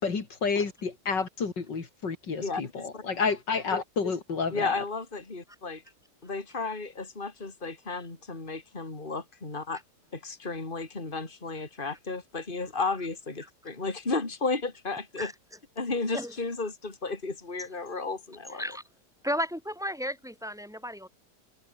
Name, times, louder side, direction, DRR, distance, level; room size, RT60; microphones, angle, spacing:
voice 1, 0.0-4.8, left 5 dB, 85° left, 3.7 m, -30 dB
voice 2, 2.4-3.0 4.5-5.8 6.2-9.8 10.1-15.3 15.8-18.8, left 3 dB, 30° left, 3.4 m, -33 dB
voice 3, 19.2-21.1, equal, ahead, 6.3 m, -33 dB
omnidirectional pair, 1.9 m